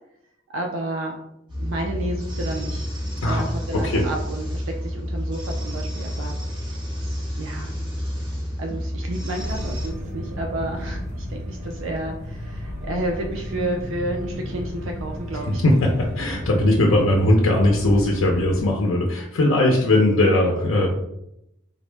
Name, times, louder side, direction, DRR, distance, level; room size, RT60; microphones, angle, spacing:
voice 1, 0.5-1.2 1.6-2.9 3.2-6.8 7.0-7.8 8.6-15.6, right 1 dB, 70° right, 2 dB, 0.4 m, -31 dB
sound 1, 1.5-9.9, equal, 25° right, 0.8 m, -29 dB
voice 2, 3.2-4.1 15.6-20.9, left 1 dB, 75° left, 0 dB, 0.5 m, -19 dB
sound 2, 9.4-18.7, equal, 40° right, 1.2 m, -33 dB
3.8 x 2.0 x 3.2 m, 0.80 s
head